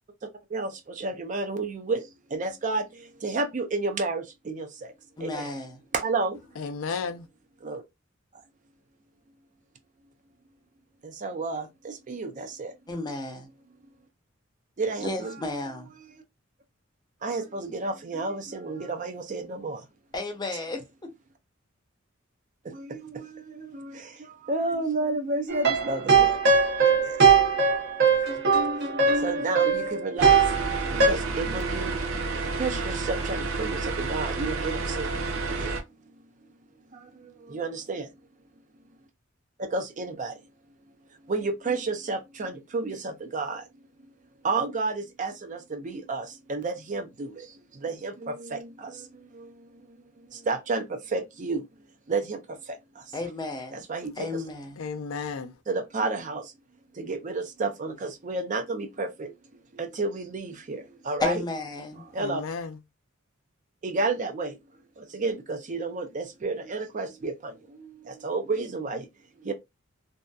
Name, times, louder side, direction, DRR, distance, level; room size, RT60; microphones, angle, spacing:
voice 1, 1.0-2.0 2.3-2.8 3.2-4.7 5.2-5.5 6.0-6.4 7.6-7.8 11.2-11.6 12.1-12.7 14.8-15.4 17.2-19.8 22.7-23.3 23.6-24.0 24.5-26.4 29.2-30.4 30.9-32.0 32.6-35.1 35.5-35.7 37.5-38.1 39.7-40.3 41.3-43.6 44.4-47.3 47.8-48.9 50.5-50.9 51.1-51.6 52.1-52.4 53.9-54.3 55.7-56.4 57.0-59.3 59.8-61.4 62.1-62.4 63.8-64.5 65.1-67.5 68.2-69.0 69.5-69.6, right 3 dB, 40° right, 0.5 m, -30 dB
voice 2, 5.2-5.8 12.9-13.5 15.0-15.9 20.1-21.1 53.1-53.8 54.2-54.9 61.2-62.0, left 2 dB, 20° left, 0.6 m, -33 dB
voice 3, 6.6-7.3 54.8-55.5 62.2-62.8, left 5 dB, 85° left, 0.5 m, -33 dB
sound 1, 25.5-31.1, right 5 dB, 55° right, 0.8 m, -21 dB
sound 2, 30.2-35.8, right 3 dB, 90° right, 0.7 m, -30 dB
2.7 x 2.4 x 2.2 m
head